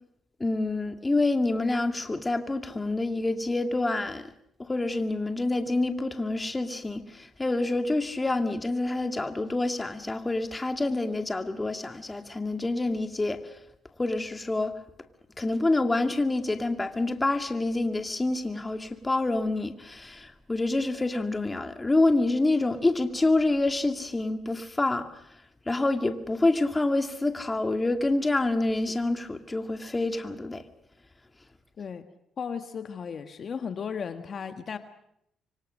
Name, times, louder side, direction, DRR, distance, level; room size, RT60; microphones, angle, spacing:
voice 1, 0.4-4.3 4.6-13.4 14.0-14.7 15.4-25.1 25.7-30.6, left 2 dB, 20° left, 2.3 m, -27 dB
voice 2, 31.8-32.1 32.4-34.8, left 6 dB, 50° left, 1.6 m, -35 dB
26.5 x 24.0 x 6.5 m
cardioid pair, 90°, 0 cm